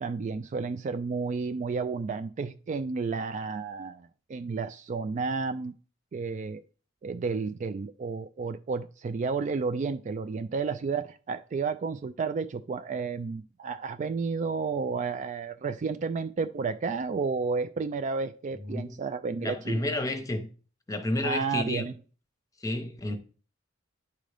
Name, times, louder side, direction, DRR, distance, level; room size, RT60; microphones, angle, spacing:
voice 1, 0.0-5.7 6.1-6.6 7.0-19.8 21.2-21.9, right 4 dB, 40° right, 0.3 m, -31 dB
voice 2, 18.6-18.9 19.4-20.5 20.9-21.9 22.6-23.2, left 1 dB, 15° left, 0.8 m, -30 dB
10.5 x 3.8 x 3.3 m
head